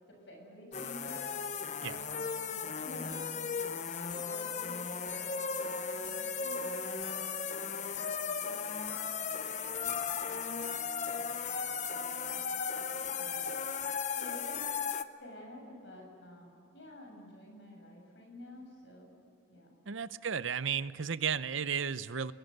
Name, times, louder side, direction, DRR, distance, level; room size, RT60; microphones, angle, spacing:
voice 1, 0.1-1.2 1.8-2.0 2.4-3.4 3.9-5.3 5.6-6.1 6.4-8.9 9.2-12.4 12.9-13.7 14.1-14.8 15.2-19.1 19.5-19.7, left 1 dB, 70° left, 1 dB, 7.8 m, -51 dB
sound 1, 0.7-15.0, left 6 dB, 40° left, 0.8 m, -36 dB
voice 2, 19.9-22.3, right 7 dB, 85° right, 15 dB, 0.7 m, -34 dB
29.0 x 22.0 x 6.7 m, 2.7 s
head